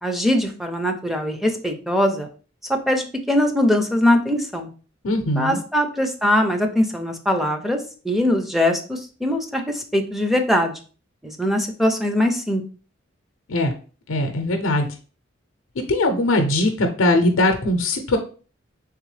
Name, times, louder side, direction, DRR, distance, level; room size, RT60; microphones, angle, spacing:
voice 1, 0.0-2.3 2.7-4.7 5.4-10.7 11.2-12.6, left 1 dB, ahead, 3 dB, 0.5 m, -21 dB
voice 2, 5.0-5.6 13.5-13.7 14.1-14.9 15.9-18.2, left 1 dB, 80° left, 5 dB, 0.6 m, -20 dB
3.6 x 3.4 x 3.2 m, 0.38 s
head